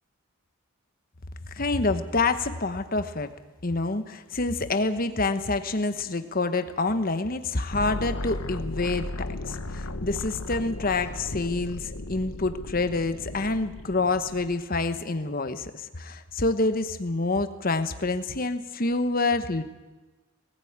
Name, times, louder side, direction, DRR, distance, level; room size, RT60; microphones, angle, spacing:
voice 1, 1.6-3.3 3.6-19.6, left 3 dB, 45° left, 10 dB, 1.1 m, -27 dB
sound 1, 7.7-14.5, left 2 dB, 90° left, 1.2 m, -36 dB
20.0 x 15.5 x 8.8 m, 1.2 s
head